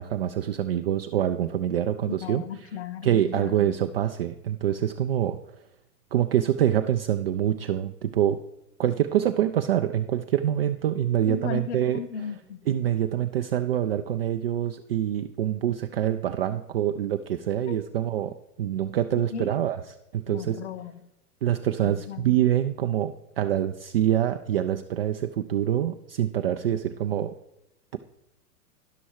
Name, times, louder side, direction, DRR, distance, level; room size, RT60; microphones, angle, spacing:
voice 1, 0.0-2.4 3.0-5.4 6.1-8.4 8.8-12.0 12.7-20.6 21.4-27.3, right 11 dB, 40° right, 7 dB, 0.4 m, -25 dB
voice 2, 2.0-3.8 11.2-12.6 17.7-17.9 19.3-19.5 20.3-21.0 21.8-22.3, left 7 dB, 45° left, 11 dB, 0.9 m, -36 dB
11.5 x 6.1 x 4.6 m, 0.86 s
figure-of-eight pair, 100°, 46 cm